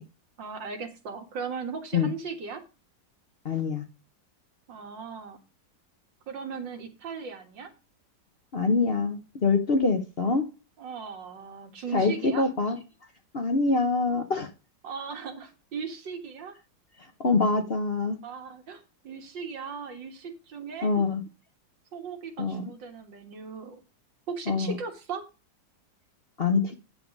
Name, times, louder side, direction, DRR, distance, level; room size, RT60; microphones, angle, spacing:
voice 1, 0.4-2.6 4.7-5.4 6.3-7.7 10.8-12.4 14.8-16.5 18.2-20.9 21.9-23.8 24.3-25.2, right 5 dB, 85° right, 5 dB, 2.4 m, -38 dB
voice 2, 3.4-3.8 8.5-10.4 11.9-12.8 13.3-14.5 17.2-18.2 20.8-21.2 22.4-22.7 24.5-24.8 26.4-26.8, left 4 dB, 45° left, 6 dB, 0.9 m, -25 dB
9.4 x 6.9 x 5.3 m, 0.31 s
omnidirectional pair, 1.9 m